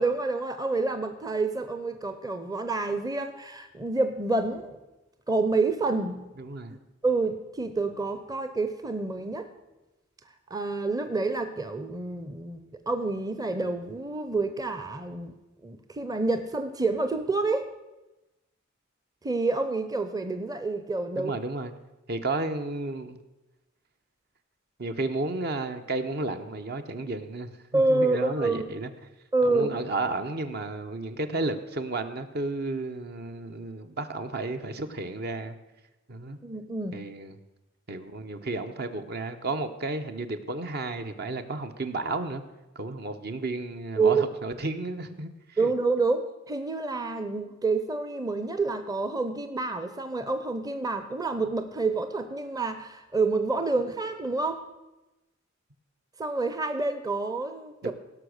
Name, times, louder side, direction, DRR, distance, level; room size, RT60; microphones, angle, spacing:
voice 1, 0.0-4.8 5.3-6.3 6.7-6.8 7.0-9.5 10.5-15.3 15.6-17.7 19.2-21.4 27.7-28.7 29.3-29.8 36.4-37.1 44.0-44.2 45.6-54.6 56.2-57.9, right 3 dB, 20° right, 9 dB, 0.7 m, -28 dB
voice 2, 6.4-6.7 21.2-21.7 22.1-23.2 24.8-28.9 29.4-35.6 36.1-36.4 36.9-37.4 37.9-42.4 42.7-45.6 57.8-57.9, right 2 dB, 55° right, 8 dB, 0.9 m, -32 dB
17.0 x 6.1 x 6.4 m, 1.0 s
head